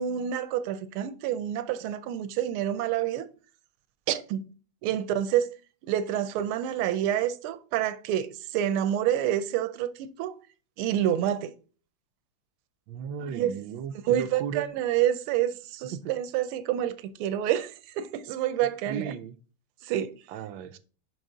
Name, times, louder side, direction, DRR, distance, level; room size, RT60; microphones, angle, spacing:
voice 1, 0.0-3.3 4.1-4.4 4.8-5.5 5.8-10.3 10.8-11.5 13.3-13.5 14.1-19.1 19.8-20.1, right 11 dB, 90° right, 1.5 m, -28 dB
voice 2, 12.9-14.7 15.9-16.1 18.9-19.3 20.3-20.8, right 7 dB, 75° right, 1.4 m, -35 dB
6.3 x 5.5 x 3.8 m
omnidirectional pair, 2.3 m